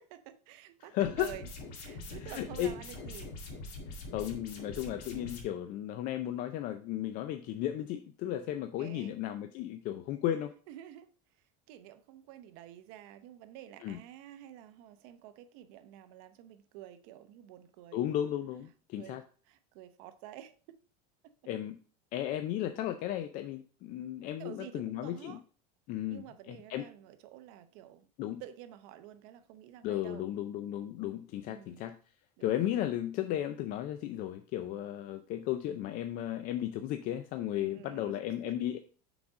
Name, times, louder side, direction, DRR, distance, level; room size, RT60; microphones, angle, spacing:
voice 1, 0.0-1.5 1.8-3.6 8.8-9.1 10.7-11.1 11.3-18.1 19.0-20.8 21.2-21.3 24.4-25.4 26.1-28.1 28.4-30.3 31.4-31.9 32.4-32.6 37.5-38.6, right 12 dB, 65° right, 0.7 m, -50 dB
voice 2, 0.9-1.3 2.1-2.7 3.9-10.5 13.8-14.0 17.9-19.2 21.5-21.8 22.1-25.4 25.9-26.2 26.5-26.9 28.2-28.4 29.8-32.0 32.4-38.8, left 12 dB, 45° left, 0.4 m, -35 dB
sound 1, 1.0-5.4, left 2 dB, 75° left, 2.0 m, -44 dB
6.0 x 3.9 x 4.9 m
supercardioid pair, 150°, 20 cm